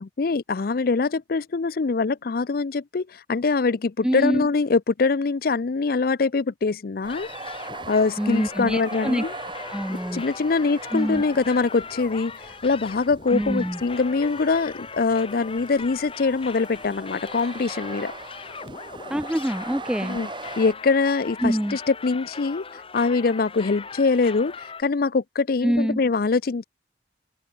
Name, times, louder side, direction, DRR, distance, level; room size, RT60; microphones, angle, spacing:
voice 1, 0.0-7.3 7.9-9.3 10.1-18.1 20.1-20.3 20.6-22.6 22.9-24.5 24.8-26.6, left 4 dB, 55° left, 0.5 m, -23 dB
voice 2, 4.0-4.5 8.2-9.2 9.7-10.2 10.9-11.2 13.3-13.8 19.1-20.2 21.4-21.8 25.6-26.0, equal, 5° right, 0.4 m, -25 dB
sound 1, 7.0-20.7, right 3 dB, 30° right, 4.3 m, -41 dB
sound 2, 7.1-24.8, left 5 dB, 30° left, 2.1 m, -39 dB
open air
head